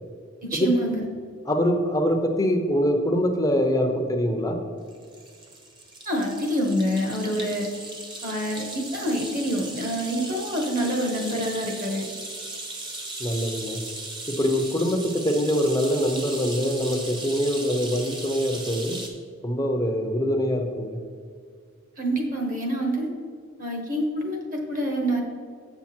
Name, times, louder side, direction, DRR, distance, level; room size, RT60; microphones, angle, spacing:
voice 1, 0.4-1.1 6.0-7.7 8.2-12.1 22.0-23.1 23.6-25.2, equal, 40° right, 1 dB, 1.2 m, -26 dB
voice 2, 1.5-4.6 13.2-13.8 14.3-19.0 19.4-21.0, equal, 15° left, 3 dB, 0.7 m, -24 dB
sound 1, 4.9-19.1, right 2 dB, 20° right, 0.9 m, -37 dB
7.9 x 5.9 x 4.4 m, 2.1 s
head